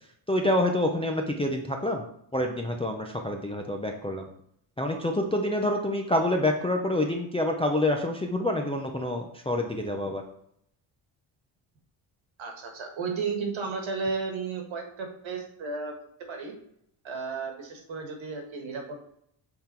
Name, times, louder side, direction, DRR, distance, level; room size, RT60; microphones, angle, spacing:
voice 1, 0.3-2.1 2.3-4.3 4.8-10.2, left 1 dB, 15° left, 2 dB, 0.4 m, -27 dB
voice 2, 12.4-15.9 16.3-16.5 17.0-19.1, right 4 dB, 65° right, 3 dB, 1.5 m, -33 dB
7.8 x 3.7 x 4.3 m, 0.71 s
wide cardioid pair, 170°, 50 cm